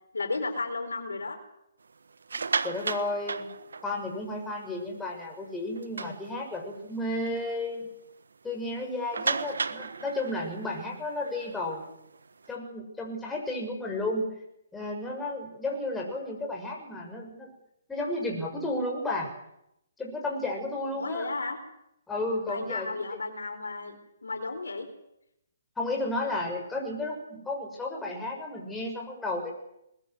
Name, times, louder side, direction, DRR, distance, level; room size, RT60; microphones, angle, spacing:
voice 1, 0.1-1.4 20.8-21.6 22.5-24.9, left 3 dB, 85° left, 5 dB, 4.5 m, -34 dB
sound 1, 2.1-4.3 4.7-4.9 5.3-5.4 5.8-6.8 7.3-7.4 7.7-7.8 9.1-12.5, right 4 dB, 80° right, 1.4 m, -34 dB
voice 2, 2.6-3.5 3.8-7.9 8.4-11.8 12.5-14.3 14.7-17.5 17.9-19.3 20.0-21.3 22.1-22.9 25.8-29.5, left 2 dB, 10° left, 0 dB, 6.4 m, -32 dB
22.0 x 20.5 x 7.9 m, 0.82 s
hypercardioid pair, 140°, 0 cm